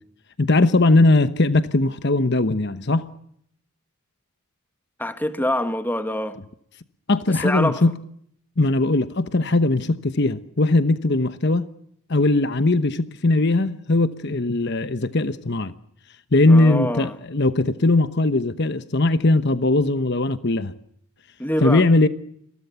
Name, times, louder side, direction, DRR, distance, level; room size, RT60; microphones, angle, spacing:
voice 1, 0.4-3.1 7.1-7.9 8.6-11.7 12.1-15.7 16.3-20.7 21.6-22.1, left 2 dB, 50° left, 1.0 m, -19 dB
voice 2, 5.0-6.4 7.3-7.8 16.5-17.2 21.4-21.8, left 1 dB, 10° left, 1.8 m, -25 dB
30.0 x 23.0 x 7.0 m
head